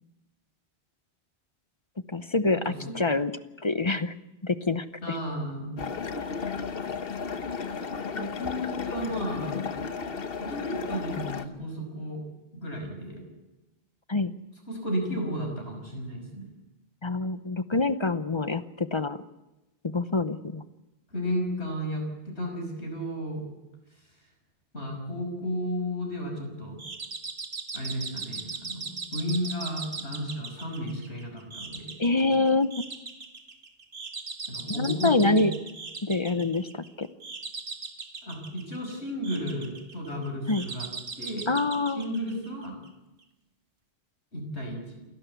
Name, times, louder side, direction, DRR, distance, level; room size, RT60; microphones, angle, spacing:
voice 1, 2.1-3.3 3.6-4.1 4.4-5.2 14.1-14.3 17.0-19.2 19.8-20.6 32.0-32.7 34.8-35.5 36.0-37.1 40.5-40.7 41.5-42.1, left 3 dB, 30° left, 12 dB, 0.7 m, -26 dB
voice 2, 5.0-5.8 8.1-9.5 10.4-12.2 12.5-13.2 14.7-16.5 21.1-23.4 24.7-26.8 27.7-32.0 34.5-35.4 38.2-40.9 41.2-41.5 42.0-42.8 44.3-45.1, equal, 80° left, 2 dB, 6.2 m, -33 dB
sound 1, 5.8-11.5, left 5 dB, 60° left, 1.2 m, -34 dB
sound 2, 26.8-42.9, right 4 dB, 55° right, 1.7 m, -39 dB
28.5 x 12.0 x 8.3 m, 1.0 s
omnidirectional pair, 1.1 m